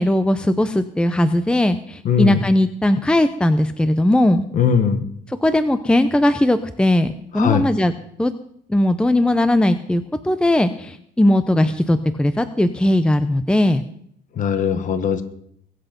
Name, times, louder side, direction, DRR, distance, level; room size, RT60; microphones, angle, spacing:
voice 1, 0.0-4.5 5.3-7.9 8.2-8.3 8.7-13.8, left 1 dB, 5° left, 10 dB, 0.7 m, -18 dB
voice 2, 2.0-2.4 4.5-5.1 7.3-7.6 14.4-15.2, left 7 dB, 50° left, 10 dB, 1.5 m, -19 dB
22.0 x 8.1 x 5.3 m, 0.70 s
cardioid pair, 110°, 17 cm